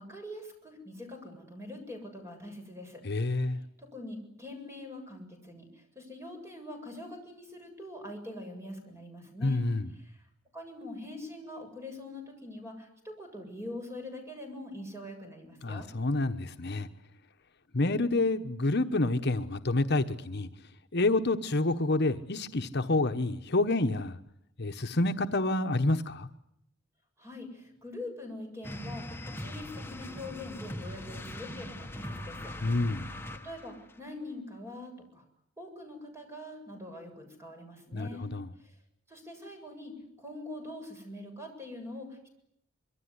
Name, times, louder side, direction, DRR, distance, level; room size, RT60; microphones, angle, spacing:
voice 1, 0.0-3.0 3.3-3.4 3.8-9.7 10.0-10.2 10.5-15.9 27.2-29.1 29.4-32.5 33.4-35.2 35.6-38.3 38.6-38.7 39.1-42.3, left 1 dB, 15° right, 4 dB, 7.8 m, -43 dB
voice 2, 3.0-3.6 9.4-9.9 15.6-16.9 17.7-20.5 20.9-24.2 24.6-26.3 32.6-33.1 37.9-38.5, left 2 dB, 55° left, 7 dB, 1.2 m, -28 dB
sound 1, 28.6-33.8, left 1 dB, 10° left, 1.5 m, -41 dB
25.5 x 23.5 x 9.8 m, 0.76 s
head